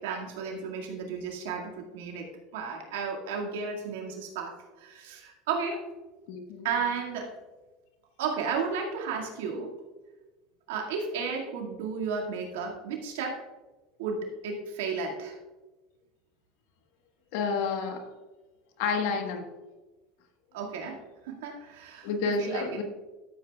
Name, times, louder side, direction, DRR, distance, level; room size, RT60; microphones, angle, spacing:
voice 1, 0.0-5.8 6.6-7.3 8.2-9.7 10.7-13.5 14.0-15.4 20.5-21.0 21.2-22.8, right 5 dB, 85° right, 0 dB, 2.0 m, -33 dB
voice 2, 6.3-6.8 17.3-18.1 18.8-19.5 22.0-22.8, left 5 dB, 70° left, 5 dB, 1.3 m, -30 dB
13.0 x 7.9 x 2.4 m, 1.2 s
supercardioid pair, 115°, 0 cm